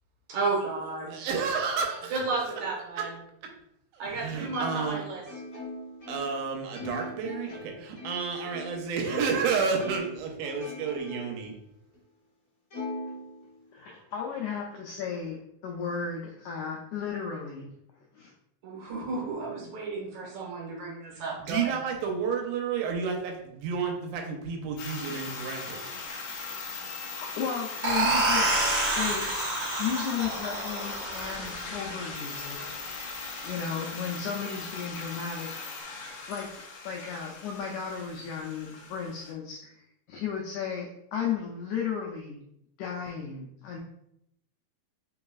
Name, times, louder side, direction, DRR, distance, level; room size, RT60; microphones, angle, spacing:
voice 1, 0.3-1.1 2.1-3.1 4.0-5.2 18.6-21.7, right 3 dB, 65° right, -3 dB, 2.0 m, -32 dB
voice 2, 1.1-2.1 3.0-3.1 3.9-5.0 6.1-7.5 8.0-11.5 21.1-25.9, right 5 dB, 85° right, 2 dB, 2.6 m, -31 dB
Plucked string instrument, 4.5-9.5 9.8-11.5 11.9-12.0 12.7-13.9, left 1 dB, 55° left, 1.0 m, -41 dB
voice 3, 13.7-17.7 18.1-18.3 27.2-28.5 28.9-29.3 29.8-32.6 33.4-35.5 36.3-36.5 36.8-39.8 40.1-42.4 42.8-43.8, left 7 dB, 90° left, -1 dB, 1.7 m, -34 dB
sound 1, 24.8-39.3, left 4 dB, 70° left, 1.7 m, -39 dB
sound 2, 27.8-33.2, right 2 dB, 45° right, 1.1 m, -29 dB
4.8 x 4.0 x 2.3 m, 0.78 s
omnidirectional pair, 4.1 m